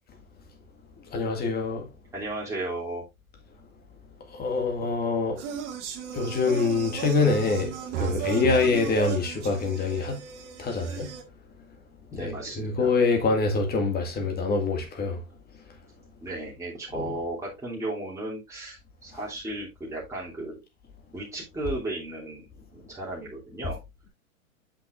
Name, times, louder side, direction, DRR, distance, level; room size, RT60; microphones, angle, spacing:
voice 1, 1.1-1.9 4.3-5.4 6.1-10.2 10.6-11.1 12.1-15.2 16.9-17.2, left 4 dB, 20° left, 2.1 m, -25 dB
voice 2, 2.1-3.0 12.1-12.9 16.2-20.6 21.1-22.5 22.7-23.8, right 2 dB, 5° right, 3.0 m, -35 dB
sound 1, 5.4-11.2, right 9 dB, 55° right, 1.8 m, -35 dB
8.5 x 6.0 x 2.5 m
hypercardioid pair, 115°, 43 cm